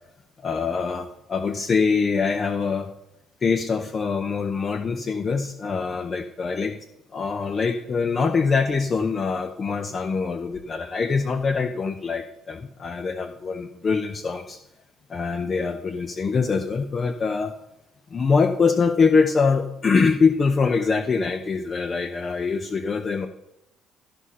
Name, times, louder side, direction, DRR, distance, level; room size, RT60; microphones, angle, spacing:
voice 1, 0.4-2.9 3.4-6.8 7.1-14.6 15.1-17.5 18.1-23.3, left 5 dB, 40° left, 8 dB, 0.6 m, -24 dB
13.0 x 5.0 x 5.6 m, 0.84 s
supercardioid pair, 85°, 0 cm